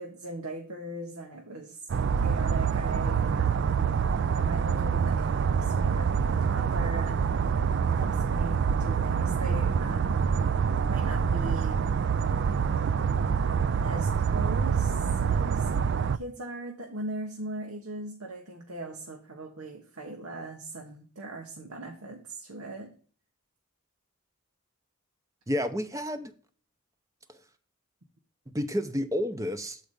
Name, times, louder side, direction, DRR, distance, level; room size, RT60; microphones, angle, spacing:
voice 1, 0.0-1.9 2.2-3.9 4.3-7.5 7.9-10.4 10.9-11.8 13.8-15.7 16.1-22.9, right 2 dB, 85° right, 1.2 m, -40 dB
sound 1, 1.9-16.2, right 6 dB, 55° right, 0.3 m, -26 dB
voice 2, 25.5-26.3 27.3-27.4 28.5-29.8, left 1 dB, 15° right, 0.7 m, -30 dB
7.6 x 4.7 x 5.2 m
head